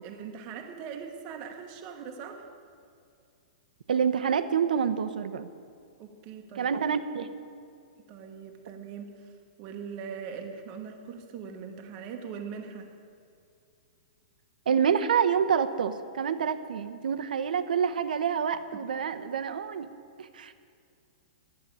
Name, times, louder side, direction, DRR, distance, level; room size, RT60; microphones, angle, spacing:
voice 1, 0.0-2.5 6.0-6.7 7.2-7.3 8.1-12.9 18.7-18.8, right 6 dB, 25° right, 4 dB, 1.1 m, -41 dB
voice 2, 3.9-5.5 6.6-7.3 14.7-19.9 20.2-20.5, right 7 dB, 90° right, 11 dB, 0.9 m, -27 dB
11.0 x 7.7 x 10.0 m, 2.4 s
hypercardioid pair, 170°, 4 cm